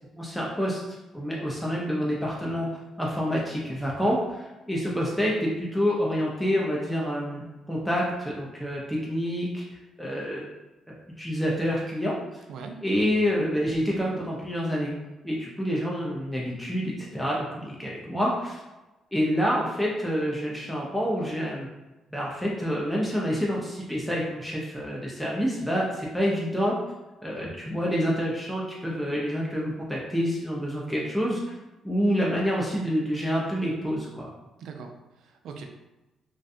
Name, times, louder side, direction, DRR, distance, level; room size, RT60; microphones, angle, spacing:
voice 1, 0.2-2.7 3.0-9.6 10.0-10.4 11.2-12.2 12.8-14.9 15.2-18.6 19.1-21.7 22.1-26.8 27.2-31.6 31.8-34.3, equal, ahead, -4 dB, 0.5 m, -27 dB
voice 2, 34.6-35.7, right 5 dB, 75° right, 4 dB, 0.3 m, -41 dB
2.5 x 2.2 x 2.6 m, 1.1 s
cardioid pair, 90°, 0 cm